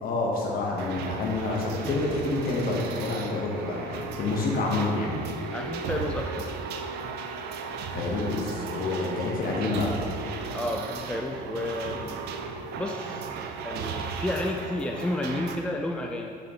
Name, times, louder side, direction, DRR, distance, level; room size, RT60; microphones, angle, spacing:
voice 1, 0.0-5.2 7.9-9.9, left 3 dB, 45° left, -2 dB, 1.5 m, -28 dB
sound 1, 0.8-15.6, right 5 dB, 50° right, 0.6 m, -36 dB
voice 2, 5.5-6.5 10.5-12.2 12.7-13.2 13.6-16.3, left 1 dB, 5° left, 2 dB, 0.4 m, -31 dB
6.7 x 6.1 x 3.4 m, 2.5 s
figure-of-eight pair, 55°, 21 cm